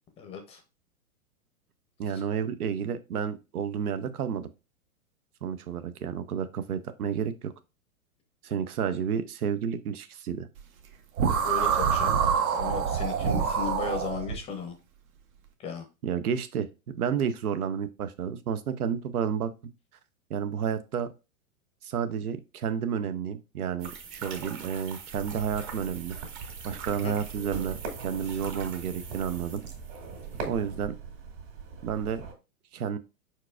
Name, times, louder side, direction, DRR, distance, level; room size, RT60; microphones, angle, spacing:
voice 1, 0.2-0.6 2.1-2.2 11.3-12.2 12.5-14.8 15.6-15.8 26.9-27.2, left 5 dB, 15° left, 6 dB, 0.6 m, -35 dB
voice 2, 2.0-4.5 5.4-7.5 8.4-10.5 16.0-16.7 16.9-19.5 20.3-21.1 21.8-26.2 26.6-29.6 30.4-30.9 31.8-32.3 32.7-33.0, right 7 dB, 90° right, 11 dB, 0.7 m, -31 dB
sound 1, 11.2-14.4, right 7 dB, 70° right, 1.1 m, -26 dB
sound 2, 23.8-30.8, right 6 dB, 25° right, 0.7 m, -43 dB
sound 3, 25.1-32.3, right 5 dB, 55° right, 2.2 m, -41 dB
4.8 x 4.5 x 2.4 m, 0.28 s
hypercardioid pair, 135°, 43 cm